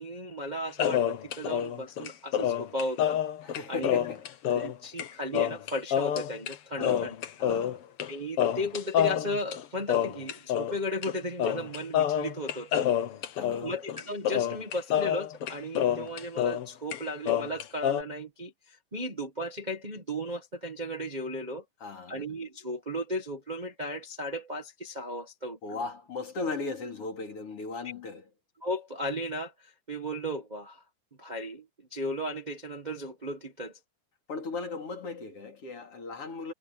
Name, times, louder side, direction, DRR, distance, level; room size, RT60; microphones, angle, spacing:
voice 1, 0.0-3.2 3.7-3.9 4.5-7.1 8.1-12.9 13.6-21.6 22.1-25.8 28.6-30.8 31.2-31.6 31.9-33.7, equal, 50° right, 0.5 m, -35 dB
sound 1, 0.8-4.7 5.0-5.1 5.3-6.5 6.8-8.1 8.4-10.8 11.0-11.1 11.4-16.7 16.9-18.0, left 10 dB, 60° left, 1.6 m, -28 dB
voice 2, 3.4-4.2 6.8-7.8 13.3-13.7 21.8-22.2 25.6-28.3 34.3-36.5, left 4 dB, 45° left, 3.9 m, -37 dB
omnidirectional pair, 3.9 m